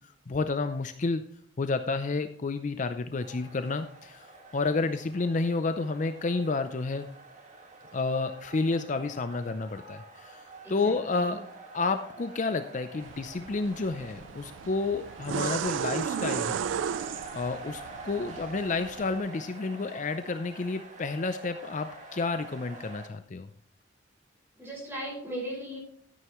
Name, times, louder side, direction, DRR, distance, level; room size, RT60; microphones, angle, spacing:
voice 1, 0.3-1.2 1.6-4.3 4.5-7.1 7.9-10.4 10.7-11.4 11.7-16.6 16.9-17.0 17.3-23.5, left 3 dB, 40° left, 9 dB, 0.5 m, -30 dB
sound 1, 3.2-23.1, right 3 dB, 40° right, 1.8 m, -47 dB
voice 2, 10.6-11.4 24.6-25.8, right 1 dB, 15° right, -3 dB, 5.3 m, -38 dB
sound 2, 13.0-19.2, right 8 dB, 80° right, 0.3 m, -35 dB
12.5 x 9.2 x 3.1 m, 0.62 s
head